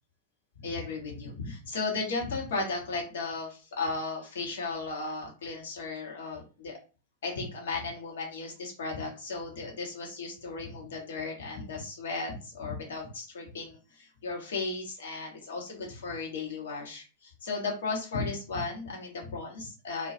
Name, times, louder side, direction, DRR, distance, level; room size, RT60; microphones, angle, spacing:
voice 1, 0.6-6.8 7.2-20.1, left 3 dB, 60° left, 0 dB, 0.9 m, -35 dB
2.2 x 2.1 x 2.6 m, 0.33 s
figure-of-eight pair, 90°, 0 cm